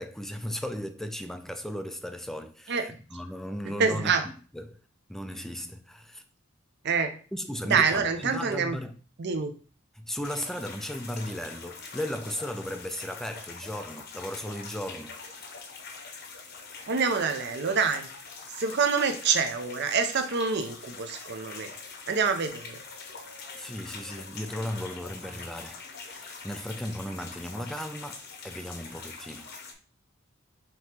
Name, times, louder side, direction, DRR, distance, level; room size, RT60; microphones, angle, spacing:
voice 1, 0.0-4.1 4.5-4.8 5.1-6.2 7.3-8.9 10.0-15.1 23.5-29.5, equal, ahead, 0.3 m, -36 dB
voice 2, 3.6-4.3 6.8-7.1 7.6-8.8 9.2-9.5 16.9-18.1 18.5-21.7 22.1-22.8, right 5 dB, 55° right, 0.6 m, -26 dB
sound 1, 10.2-29.7, left 4 dB, 55° left, 0.8 m, -44 dB
5.2 x 2.9 x 2.9 m
head